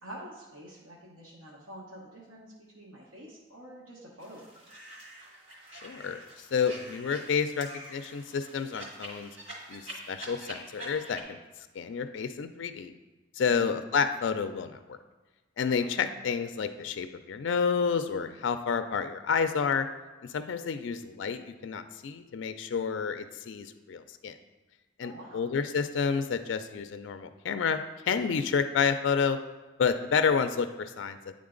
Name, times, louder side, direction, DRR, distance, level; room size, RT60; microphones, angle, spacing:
voice 1, 0.0-4.6 25.0-25.4, right 1 dB, 90° right, -5 dB, 1.2 m, -47 dB
sound 1, 4.2-11.2, right 1 dB, 65° right, 1.7 m, -46 dB
voice 2, 5.8-9.3 9.7-9.8 10.1-11.4 11.8-12.9 13.4-15.0 15.6-19.9 20.2-24.4 25.0-29.4 29.8-31.2, left 6 dB, 65° left, 10 dB, 0.4 m, -29 dB
9.5 x 3.7 x 3.8 m, 1.2 s
head